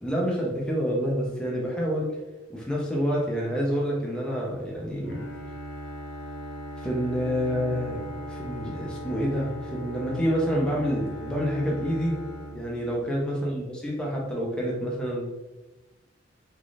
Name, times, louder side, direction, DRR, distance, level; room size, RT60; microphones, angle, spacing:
voice 1, 0.0-2.1 2.5-5.2 6.8-12.1 12.5-15.3, equal, 5° left, -3 dB, 0.7 m, -28 dB
Bowed string instrument, 5.0-13.2, equal, 80° left, 1.1 m, -38 dB
3.7 x 3.4 x 2.6 m, 1.1 s
head